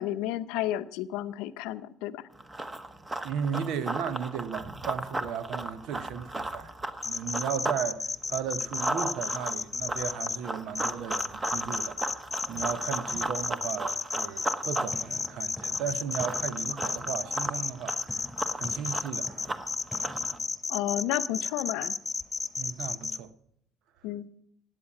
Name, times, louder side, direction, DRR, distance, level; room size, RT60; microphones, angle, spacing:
voice 1, 0.0-2.2 20.7-21.9 24.0-24.4, left 13 dB, 75° left, 0.6 m, -32 dB
Run, 2.4-7.8 8.2-20.4, right 2 dB, 20° right, 1.3 m, -35 dB
voice 2, 3.2-6.7 7.0-18.2 18.5-19.3 22.6-23.3, right 8 dB, 70° right, 0.9 m, -35 dB
sound 1, 7.0-10.4 10.8-23.2, left 4 dB, 30° left, 0.8 m, -32 dB
sound 2, 14.6-20.4, equal, ahead, 7.4 m, -47 dB
16.5 x 9.1 x 5.9 m
hypercardioid pair, 60°, 0 cm